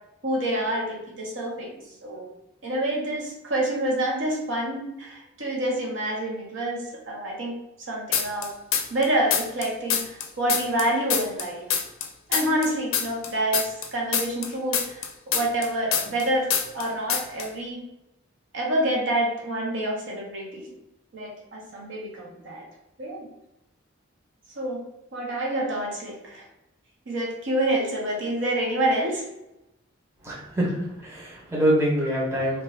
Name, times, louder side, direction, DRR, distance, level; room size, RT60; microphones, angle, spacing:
voice 1, 0.2-2.3 2.6-7.5 7.9-8.5 8.9-11.8 12.3-17.8 18.5-20.7 21.1-22.6 23.0-23.3 24.6-24.8 25.1-26.4 27.1-29.2, right 1 dB, 65° right, -2 dB, 0.7 m, -27 dB
sound 1, 8.1-9.0 9.3-12.1 12.3-16.2 16.5-16.8 17.1-17.5, left 8 dB, 85° left, 0.4 m, -25 dB
voice 2, 30.2-30.7 31.0-32.6, right 1 dB, 15° right, -6 dB, 0.7 m, -24 dB
2.4 x 2.3 x 3.2 m, 0.90 s
head